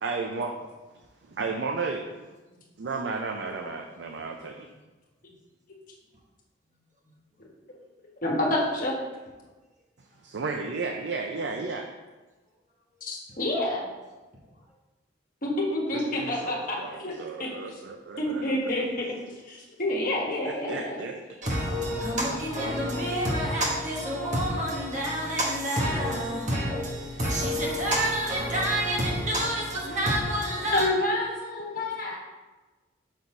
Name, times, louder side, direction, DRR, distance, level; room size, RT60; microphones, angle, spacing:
voice 1, 0.0-0.5 1.3-2.0 2.8-4.7 10.2-11.9 15.9-19.2 20.5-21.2, right 4 dB, 65° right, 3 dB, 0.5 m, -33 dB
voice 2, 8.2-8.9 13.0-13.8 15.4-17.1 17.4-17.8 18.2-19.1 19.5-21.0 30.7-32.2, left 1 dB, 45° left, -2 dB, 1.3 m, -28 dB
voice 3, 21.4-30.9, equal, 40° right, -2 dB, 1.3 m, -28 dB
6.2 x 4.0 x 4.8 m, 1.2 s
head